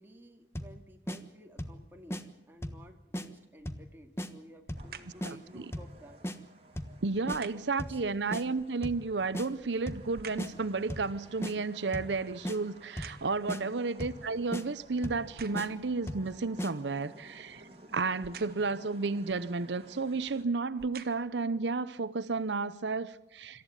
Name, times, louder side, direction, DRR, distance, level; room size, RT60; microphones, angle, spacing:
voice 1, 0.0-6.2 7.5-8.2 13.5-13.8, equal, 10° right, 2.2 m, -53 dB
sound 1, 0.5-0.8 1.1-1.2 1.6-1.8 2.1-2.2 2.6-2.8 3.1-3.3 3.7-3.9 4.2-4.3 4.7-4.9 5.2-5.3 5.7-5.9 6.2-6.4 6.8-7.0 7.3-7.4 7.8-8.0 8.3-8.4 8.8-9.0 9.3-9.5 9.9-10.1 10.4-10.5 10.9-11.1 11.4-11.5 11.9-12.2 12.4-12.6 13.0-13.2 13.5-13.6 14.0-14.2 14.5-14.6 15.0-15.3 15.5-15.7 16.1-16.3 16.6-16.7, equal, 15° left, 1.3 m, -36 dB
sound 2, 3.6-4.0 4.7-5.3 7.3-7.8 9.2-10.6 11.1-13.6 14.2-14.3 15.1-15.9 18.2-18.8 19.8-19.9 20.6-21.4 22.1-22.2, right 6 dB, 55° right, 1.3 m, -49 dB
sound 3, 4.8-20.4, right 2 dB, 35° right, 2.9 m, -56 dB
voice 2, 5.2-5.6 7.0-17.6 17.9-23.6, right 4 dB, 80° right, 0.8 m, -32 dB
26.5 x 14.0 x 9.9 m
head